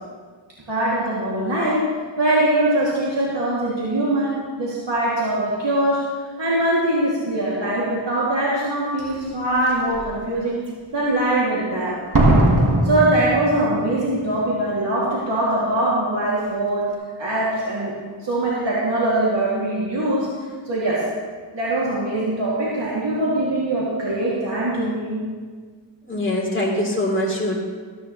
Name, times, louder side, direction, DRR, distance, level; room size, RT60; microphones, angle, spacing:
voice 1, 0.7-1.8 2.2-6.0 6.4-10.6 10.9-12.0 12.8-16.9 17.2-17.9 18.2-20.3 20.7-21.0 21.5-25.2, right 1 dB, 65° right, -7 dB, 2.5 m, -22 dB
Slam, 9.0-9.1 9.7-10.1 12.1-14.0 14.3-14.4, right 1 dB, 45° right, 1.7 m, -19 dB
voice 2, 26.0-27.6, left 1 dB, 25° left, -3 dB, 3.3 m, -23 dB
14.0 x 13.5 x 3.1 m, 1.6 s
wide cardioid pair, 60°, 47 cm